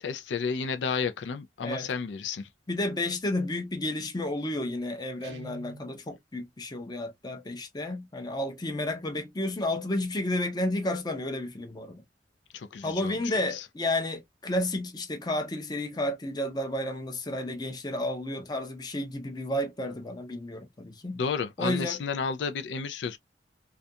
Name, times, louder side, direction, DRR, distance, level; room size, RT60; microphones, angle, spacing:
voice 1, 0.0-2.5 12.5-13.2 13.5-13.6 21.1-23.2, left 5 dB, 85° left, 0.4 m, -32 dB
voice 2, 2.7-12.0 12.8-21.2 21.6-22.0, left 1 dB, 25° left, 0.6 m, -31 dB
Guitar, 5.2-6.0, right 2 dB, 85° right, 0.6 m, -46 dB
2.4 x 2.2 x 2.6 m
head